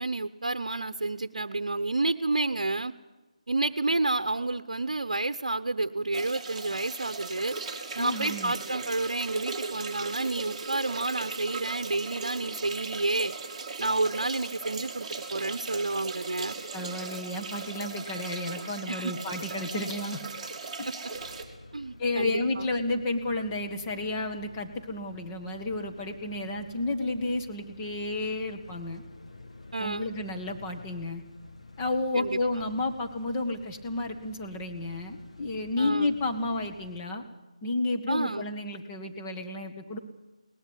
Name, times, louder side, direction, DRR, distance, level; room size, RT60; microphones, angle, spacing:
voice 1, 0.0-2.9 3.5-7.5 7.9-13.3 13.8-16.6 18.9-19.1 21.7-22.7 29.7-30.1 32.1-32.4 35.8-36.1 38.1-38.5, right 2 dB, 65° right, 10 dB, 0.9 m, -30 dB
sound 1, 6.1-21.4, right 4 dB, 10° right, 2.5 m, -38 dB
voice 2, 8.0-8.5 16.7-20.2 20.8-20.9 22.0-29.0 29.8-31.2 31.8-37.2 37.6-40.0, left 2 dB, 20° left, 2 dB, 1.8 m, -31 dB
sound 2, 21.1-37.0, left 2 dB, 60° left, 2.1 m, -50 dB
22.0 x 19.5 x 8.3 m, 1.1 s
figure-of-eight pair, 155°, 4 cm